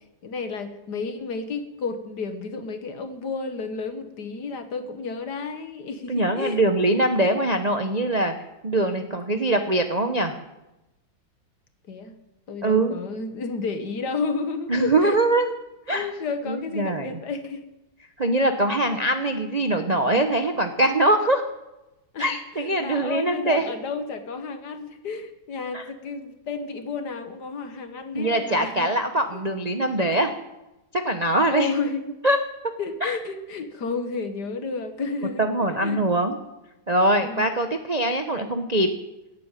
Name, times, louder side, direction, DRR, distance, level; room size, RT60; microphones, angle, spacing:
voice 1, 0.2-6.6 11.9-12.1 12.5-15.2 15.9-17.6 22.1-28.9 29.3-29.4 31.5-32.1 32.8-35.5 35.8-36.0 37.2-37.6, left 4 dB, 60° left, 9 dB, 1.8 m, -31 dB
voice 2, 6.1-8.3 8.6-10.4 12.6-13.0 14.7-15.5 15.9-16.1 16.5-17.2 18.2-21.5 22.2-23.7 25.7-25.8 28.1-30.3 30.9-31.7 32.2-32.4 33.0-33.2 35.4-36.4 36.9-38.9, right 1 dB, 35° right, 6 dB, 0.6 m, -22 dB
16.5 x 8.7 x 9.1 m, 0.97 s
omnidirectional pair, 2.1 m